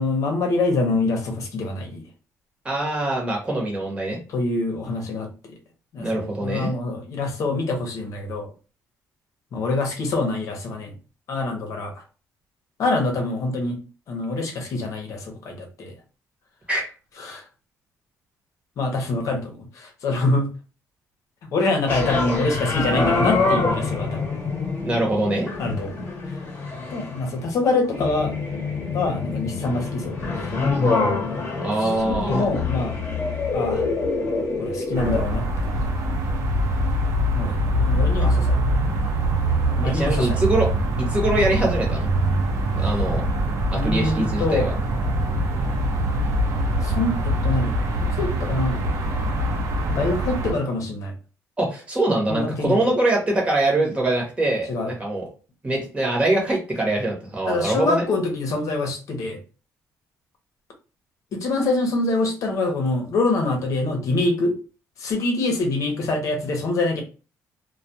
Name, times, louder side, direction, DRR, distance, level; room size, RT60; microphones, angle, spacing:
voice 1, 0.0-2.0 4.3-5.3 5.9-8.5 9.5-10.9 11.3-12.0 12.8-13.8 14.1-15.9 17.2-17.4 18.8-20.5 21.5-24.3 25.6-26.0 26.9-28.3 28.9-30.5 31.7-33.0 33.5-33.8 34.6-35.4 37.3-37.6 37.8-38.6 39.8-40.4 43.7-44.7 46.8-48.9 49.9-51.1 52.3-52.8 54.7-54.9 57.5-59.4 61.3-64.5 65.0-67.0, left 2 dB, 60° left, 3 dB, 0.8 m, -25 dB
voice 2, 2.6-4.2 6.0-6.7 16.7-16.8 24.8-25.5 31.6-32.4 39.8-40.7 41.0-42.1 42.7-43.2 43.7-44.7 51.6-55.2 55.6-58.0, right 2 dB, 20° right, -1 dB, 1.0 m, -23 dB
sound 1, 21.9-35.2, left 3 dB, 35° left, 0.9 m, -25 dB
sound 2, 34.9-50.5, right 1 dB, 60° right, 0.6 m, -23 dB
2.2 x 2.2 x 2.7 m, 0.35 s
cardioid pair, 110°, 6 cm